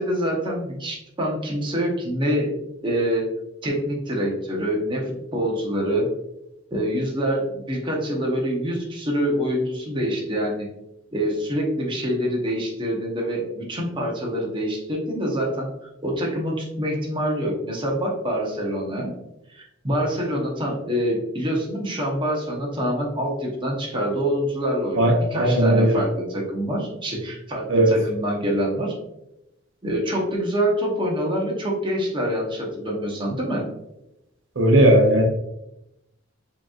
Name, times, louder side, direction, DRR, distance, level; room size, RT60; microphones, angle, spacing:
voice 1, 0.0-2.6 2.8-3.3 3.6-6.1 6.7-10.7 11.1-15.7 16.0-19.1 19.5-28.9 29.8-33.7, equal, 25° right, -2 dB, 0.9 m, -25 dB
voice 2, 25.0-26.0 27.7-28.0 34.6-35.2, right 1 dB, 70° right, 0 dB, 0.7 m, -17 dB
4.9 x 3.0 x 2.4 m, 0.86 s
head